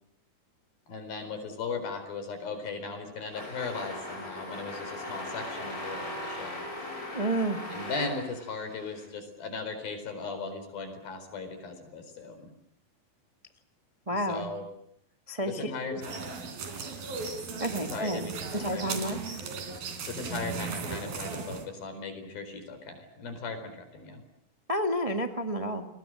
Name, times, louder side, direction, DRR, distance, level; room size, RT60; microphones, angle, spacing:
voice 1, 0.9-6.7 7.7-12.5 14.1-14.6 15.5-16.2 17.8-19.2 20.0-24.2, left 4 dB, 80° left, 8 dB, 6.2 m, -38 dB
sound 1, 3.3-9.1, left 1 dB, 25° left, 6.0 m, -39 dB
voice 2, 7.1-7.6 14.1-14.5 15.3-15.6 15.9-16.0 17.6-19.2 24.7-25.8, right 1 dB, 40° right, 5 dB, 0.4 m, -30 dB
sound 2, 16.0-21.7, right 4 dB, 80° right, 5.2 m, -37 dB
29.5 x 22.0 x 7.7 m, 0.75 s
omnidirectional pair, 4.2 m